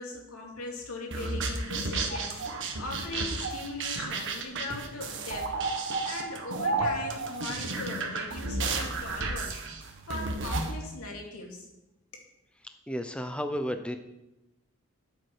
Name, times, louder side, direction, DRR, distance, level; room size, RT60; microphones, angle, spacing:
voice 1, 0.0-9.6 10.1-11.7, left 2 dB, 85° left, 0 dB, 2.6 m, -40 dB
sound 1, 1.1-10.7, right 3 dB, 60° right, 1.5 m, -32 dB
voice 2, 12.9-14.0, equal, 5° left, 7 dB, 0.6 m, -32 dB
12.5 x 7.8 x 4.7 m, 0.95 s
head